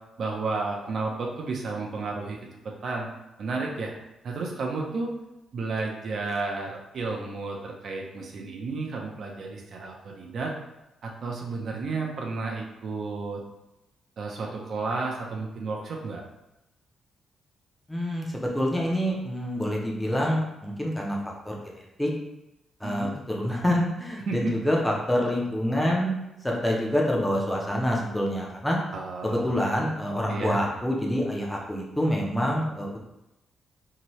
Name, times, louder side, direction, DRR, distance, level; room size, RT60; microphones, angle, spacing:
voice 1, 0.2-2.4 2.6-3.1 3.4-3.9 4.2-5.1 5.5-10.5 11.0-13.4 14.2-16.2 22.8-23.2 24.3-24.5 28.9-29.5 30.3-30.6, right 3 dB, 50° right, 0 dB, 0.5 m, -32 dB
voice 2, 17.9-21.2 21.4-22.1 22.8-26.1 26.4-28.8 29.2-33.0, equal, 5° left, -2 dB, 0.5 m, -26 dB
2.8 x 2.7 x 3.0 m, 0.91 s
wide cardioid pair, 170°, 0 cm